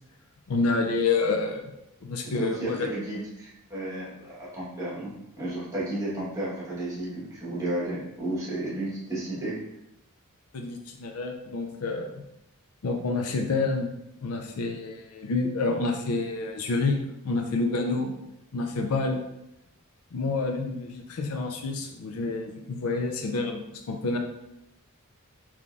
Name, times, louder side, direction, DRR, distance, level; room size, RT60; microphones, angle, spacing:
voice 1, 0.5-1.7 2.0-2.9 10.5-12.2 12.8-13.9 14.2-18.2 18.5-19.2 20.1-24.2, left 3 dB, 75° left, 3 dB, 0.4 m, -28 dB
voice 2, 2.2-9.6, right 1 dB, 15° right, -7 dB, 1.3 m, -33 dB
3.7 x 3.0 x 2.5 m, 0.86 s
head